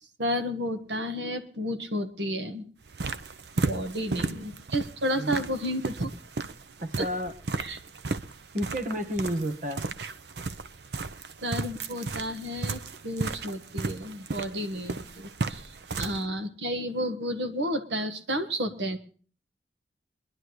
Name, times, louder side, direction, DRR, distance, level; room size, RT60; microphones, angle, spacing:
voice 1, 0.2-2.7 3.7-6.1 7.0-7.1 7.6-7.8 11.4-15.6 16.0-19.0, equal, 85° right, 7 dB, 1.5 m, -31 dB
sound 1, 2.8-16.2, right 3 dB, 65° right, 0.8 m, -35 dB
voice 2, 6.8-7.3 8.5-9.9, equal, 45° right, 8 dB, 1.5 m, -31 dB
23.0 x 11.5 x 3.1 m, 0.41 s
head